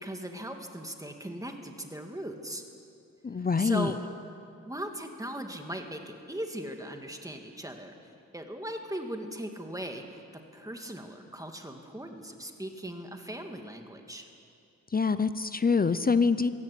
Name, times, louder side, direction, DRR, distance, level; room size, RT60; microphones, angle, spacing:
voice 1, 0.0-2.6 3.4-4.0 4.7-10.2 10.5-14.2, right 1 dB, 10° right, 4 dB, 1.9 m, -39 dB
voice 2, 3.2-3.9 14.9-16.5, left 5 dB, 30° left, 13 dB, 0.6 m, -25 dB
22.5 x 17.0 x 8.5 m, 2.5 s
wide cardioid pair, 120°, 33 cm